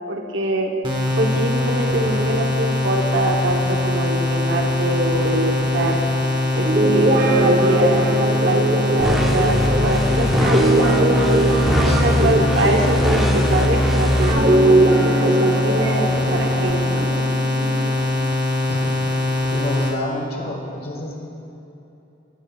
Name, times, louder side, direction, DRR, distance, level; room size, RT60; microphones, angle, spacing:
voice 1, 0.1-0.7 1.2-6.0 6.5-11.0 11.8-17.1, right 2 dB, 70° right, 2 dB, 1.0 m, -24 dB
sound 1, 0.8-20.0, left 2 dB, 25° right, 1.2 m, -22 dB
Guitar, 6.6-13.8 14.2-17.9, right 2 dB, 45° right, 0.8 m, -21 dB
sound 2, 9.0-14.3, equal, ahead, 0.7 m, -22 dB
voice 2, 18.7-19.2 19.5-21.2, left 1 dB, 50° left, -1 dB, 1.3 m, -29 dB
17.0 x 8.8 x 2.4 m, 2.9 s
head